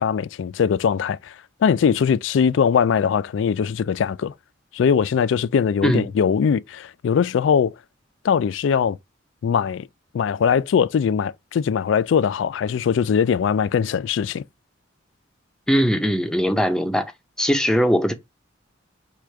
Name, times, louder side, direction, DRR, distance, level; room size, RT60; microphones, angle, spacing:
voice 1, 0.0-1.3 1.6-4.3 4.7-7.7 8.2-9.0 9.4-9.9 10.1-14.4, left 7 dB, 70° left, 0.3 m, -21 dB
voice 2, 15.7-17.1 17.4-18.1, equal, 5° left, 0.6 m, -20 dB
4.8 x 2.4 x 4.4 m
head